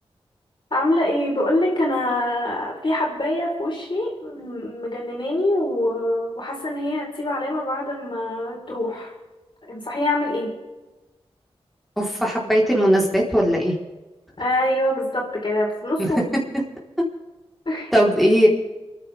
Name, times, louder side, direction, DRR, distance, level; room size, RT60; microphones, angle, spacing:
voice 1, 0.7-9.1 9.6-10.5 14.4-16.3 17.6-17.9, left 1 dB, 50° left, -2 dB, 4.6 m, -24 dB
voice 2, 12.0-13.8 16.0-16.4 17.9-18.5, equal, ahead, -3 dB, 4.4 m, -19 dB
29.0 x 11.0 x 3.7 m, 1.1 s
cardioid pair, 50°, 10 cm